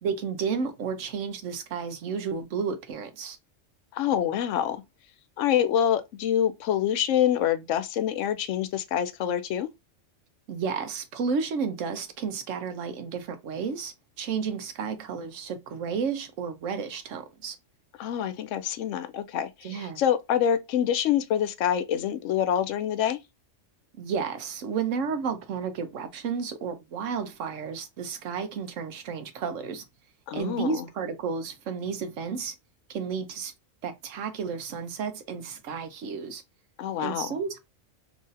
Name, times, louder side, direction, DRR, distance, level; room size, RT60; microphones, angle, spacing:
voice 1, 0.0-3.4 10.5-17.6 19.6-20.0 24.0-29.8 30.3-32.5 32.9-33.5 33.8-36.4 37.0-37.6, right 6 dB, 80° right, 1.1 m, -32 dB
voice 2, 3.9-4.8 5.4-9.7 18.0-23.2 30.3-30.8 36.8-37.4, left 9 dB, 75° left, 0.9 m, -26 dB
3.9 x 3.1 x 2.5 m
omnidirectional pair, 1.3 m